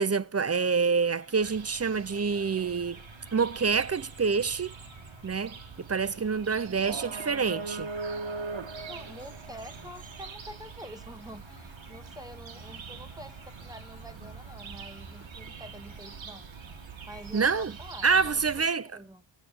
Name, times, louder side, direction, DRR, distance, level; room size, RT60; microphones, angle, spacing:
voice 1, 0.0-3.0 3.3-4.7 5.2-7.9 17.3-17.7 18.0-18.9, right 5 dB, 30° right, 0.7 m, -27 dB
sound 1, 0.6-18.8, left 4 dB, 40° left, 3.2 m, -58 dB
sound 2, 1.4-18.6, right 4 dB, 70° right, 2.1 m, -42 dB
voice 2, 8.9-16.5 17.0-19.2, equal, 10° right, 1.6 m, -47 dB
15.5 x 8.5 x 6.9 m
wide cardioid pair, 95°, 48 cm